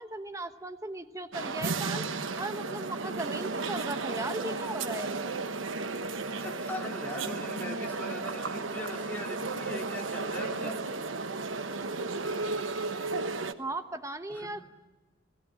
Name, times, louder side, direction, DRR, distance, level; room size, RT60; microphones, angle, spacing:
voice 1, 0.0-2.1 2.4-5.2 13.6-14.6, right 2 dB, 15° right, 9 dB, 1.0 m, -37 dB
sound 1, 1.3-13.5, right 3 dB, 85° right, 1.2 m, -34 dB
voice 2, 6.4-10.8 14.3-14.5, left 1 dB, 10° left, 0 dB, 3.2 m, -41 dB
29.5 x 17.5 x 8.7 m, 1.3 s
head